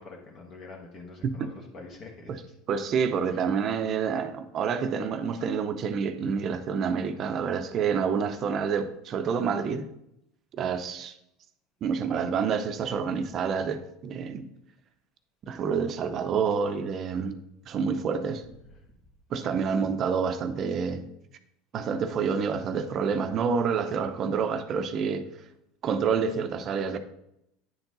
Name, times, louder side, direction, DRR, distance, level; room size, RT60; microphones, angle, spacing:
voice 1, 0.0-2.3 3.3-3.4 19.4-19.7, left 3 dB, 40° left, 1.3 m, -46 dB
voice 2, 2.7-9.9 10.5-11.1 11.8-14.5 15.4-17.4 17.7-18.4 19.3-21.1 21.7-25.4 25.8-27.0, right 6 dB, 40° right, 0.6 m, -28 dB
9.5 x 4.5 x 3.9 m
supercardioid pair, 115°, 0 cm